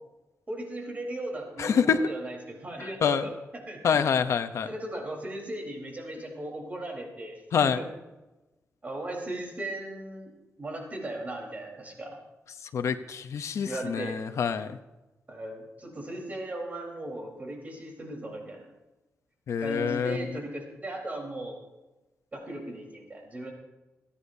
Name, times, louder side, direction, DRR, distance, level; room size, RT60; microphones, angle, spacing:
voice 1, 0.5-3.8 4.7-7.9 8.8-10.3 10.6-12.2 13.6-14.2 15.3-18.7 19.6-21.6 22.3-23.5, right 1 dB, 30° right, 0 dB, 3.9 m, -37 dB
voice 2, 1.6-2.0 3.0-3.3 3.8-4.7 7.5-7.8 12.7-14.8 19.5-20.3, left 7 dB, 65° left, 9 dB, 0.7 m, -26 dB
29.0 x 9.9 x 2.7 m, 1.1 s
wide cardioid pair, 125°, 5 cm